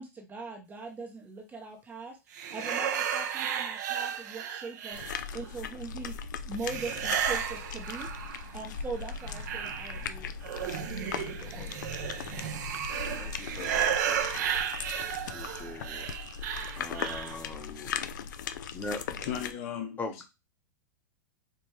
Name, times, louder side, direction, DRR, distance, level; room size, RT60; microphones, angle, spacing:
voice 1, 0.0-5.0 5.3-6.2 6.4-8.1 8.5-10.9 11.2-11.7, right 3 dB, 15° right, 0.6 m, -41 dB
sound 1, 2.3-5.5 6.6-8.6 9.0-17.4, right 9 dB, 65° right, 0.6 m, -33 dB
sound 2, 4.9-19.5, left 7 dB, 75° left, 0.4 m, -39 dB
voice 2, 13.2-14.6 15.3-16.1 16.8-17.9 18.7-19.0 20.0-20.3, left 3 dB, 20° left, 0.8 m, -41 dB
voice 3, 19.2-20.3, left 8 dB, 55° left, 0.9 m, -37 dB
4.5 x 2.2 x 3.2 m
hypercardioid pair, 115°, 10 cm